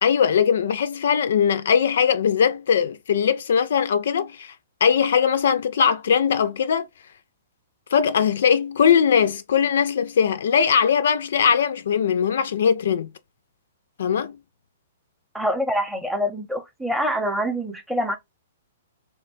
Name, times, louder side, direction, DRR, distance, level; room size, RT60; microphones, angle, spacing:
voice 1, 0.0-4.5 4.8-6.9 7.9-13.1 14.0-14.4, left 7 dB, 65° left, 0.3 m, -20 dB
voice 2, 15.3-18.2, equal, ahead, 0.6 m, -25 dB
3.1 x 2.2 x 2.4 m
figure-of-eight pair, 115°, 0 cm